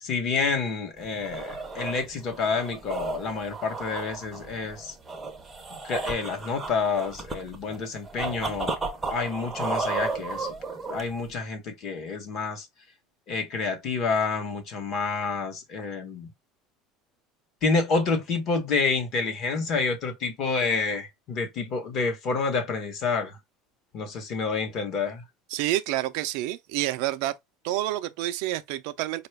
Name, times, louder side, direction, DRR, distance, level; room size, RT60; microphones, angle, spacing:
voice 1, 0.0-4.9 5.7-8.8 9.1-10.5 10.9-12.7 13.3-16.3 17.6-23.4 23.9-25.2, left 4 dB, 35° left, 0.9 m, -28 dB
sound 1, 1.0-11.3, right 3 dB, 10° right, 0.6 m, -34 dB
voice 2, 25.5-27.3 27.6-29.3, right 15 dB, 60° right, 0.4 m, -28 dB
4.7 x 2.3 x 3.2 m
cardioid pair, 175°, 0 cm